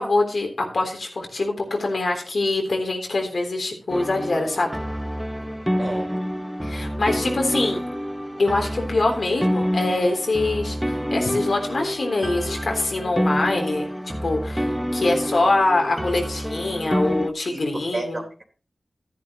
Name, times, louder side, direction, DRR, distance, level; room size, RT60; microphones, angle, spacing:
voice 1, 0.0-4.7 6.6-7.8 8.4-13.9 14.2-14.7 14.9-18.2, left 2 dB, 70° left, 2 dB, 3.5 m, -24 dB
sound 1, 3.9-17.3, equal, 5° right, 0.9 m, -27 dB
voice 2, 5.8-6.1 17.5-18.4, right 2 dB, 45° right, -1 dB, 3.2 m, -32 dB
13.0 x 11.0 x 3.1 m, 0.35 s
wide cardioid pair, 65°, 0 cm